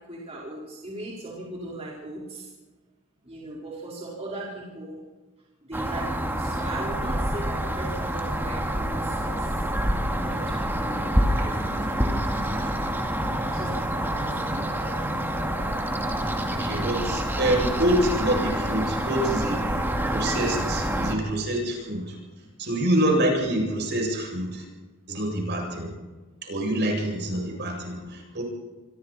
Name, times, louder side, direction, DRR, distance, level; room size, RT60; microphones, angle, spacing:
voice 1, 0.1-2.5 3.2-5.0 5.7-9.5 10.1-12.2 13.3-14.6, right 2 dB, 30° right, -5 dB, 4.8 m, -38 dB
sound 1, 5.7-21.2, right 1 dB, 10° right, 2.5 m, -27 dB
voice 2, 16.5-22.2 22.6-24.6 25.1-25.9 26.4-28.4, right 1 dB, 55° right, 1 dB, 7.7 m, -26 dB
27.5 x 22.5 x 4.4 m, 1.3 s
head